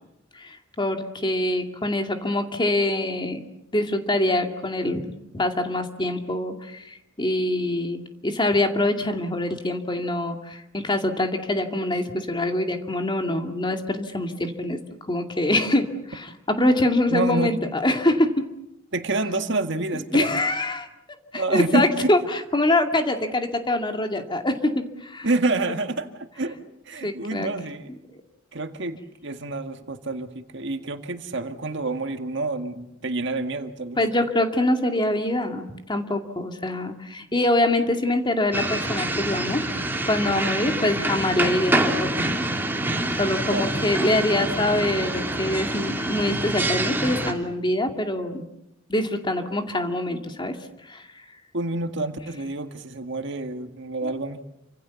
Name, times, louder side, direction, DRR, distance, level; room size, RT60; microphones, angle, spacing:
voice 1, 0.3-3.4 3.7-14.8 15.1-18.3 19.9-20.9 21.3-25.3 27.0-27.5 34.0-42.2 43.2-48.5 48.9-50.6 50.9-51.0, left 1 dB, 25° left, 5 dB, 2.3 m, -24 dB
voice 2, 17.1-17.5 18.9-20.3 21.3-22.1 25.2-26.6 26.9-27.9 28.5-34.0 43.5-43.9 51.5-54.4, right 2 dB, 65° right, 7 dB, 1.9 m, -28 dB
sound 1, 38.5-47.3, right 1 dB, 10° right, 2.7 m, -26 dB
29.0 x 25.5 x 7.1 m, 0.84 s
head